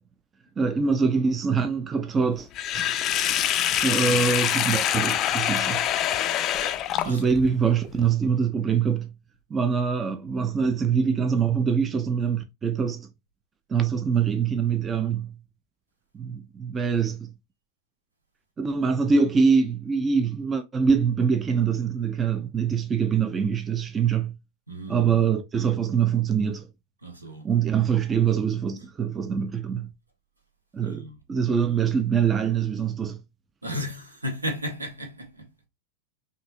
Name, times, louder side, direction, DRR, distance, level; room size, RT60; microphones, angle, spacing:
voice 1, 0.6-2.5 2.7-2.9 3.8-5.8 7.0-9.1 9.5-13.1 13.7-15.3 16.1-17.3 18.6-24.3 24.9-26.7 27.4-29.9 30.7-31.0 31.3-33.2, right 6 dB, 20° right, 0.5 m, -24 dB
Sink (filling or washing), 2.5-7.5, left 11 dB, 35° left, 0.4 m, -25 dB
voice 2, 7.0-7.3 24.7-25.3 27.0-27.5 28.8-28.9 30.8-31.2 33.6-35.5, equal, 80° right, 1.3 m, -34 dB
5.4 x 2.7 x 2.6 m
figure-of-eight pair, 90°, 0 cm